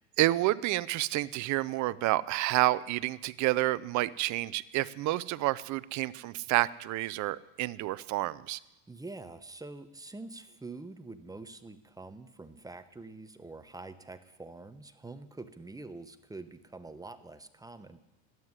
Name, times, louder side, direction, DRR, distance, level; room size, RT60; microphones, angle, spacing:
voice 1, 0.2-8.6, right 17 dB, 45° right, 19 dB, 0.6 m, -29 dB
voice 2, 8.9-18.0, right 3 dB, 10° right, 10 dB, 1.0 m, -45 dB
12.5 x 9.3 x 9.7 m, 0.96 s
hypercardioid pair, 95°, 39 cm